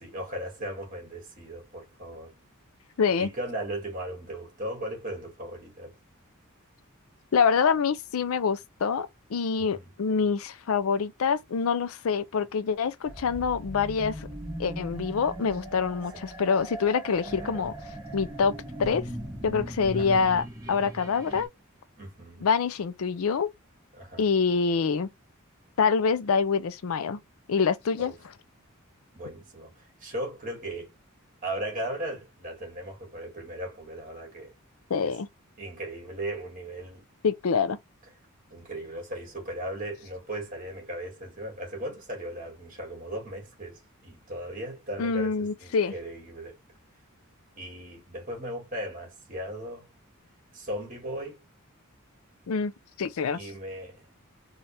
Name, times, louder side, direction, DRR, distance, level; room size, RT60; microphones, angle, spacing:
voice 1, 0.0-2.3 3.2-6.0 9.6-9.9 17.3-17.7 19.9-20.2 22.0-22.5 23.9-24.3 28.0-28.2 29.1-30.9 31.4-34.5 35.0-35.2 35.6-37.1 38.5-46.6 47.6-49.9 50.5-51.4 53.3-54.2, right 1 dB, 40° right, 2.2 m, -37 dB
voice 2, 3.0-3.3 7.3-14.3 14.6-17.7 18.1-18.5 18.8-19.1 19.4-21.5 22.4-23.5 24.2-25.1 25.8-27.2 27.5-28.1 34.9-35.3 37.2-37.8 45.0-45.9 52.5-52.7 53.0-53.4, left 5 dB, 70° left, 0.5 m, -26 dB
sound 1, 13.0-21.5, right 1 dB, 15° right, 1.1 m, -39 dB
4.2 x 2.4 x 3.2 m
head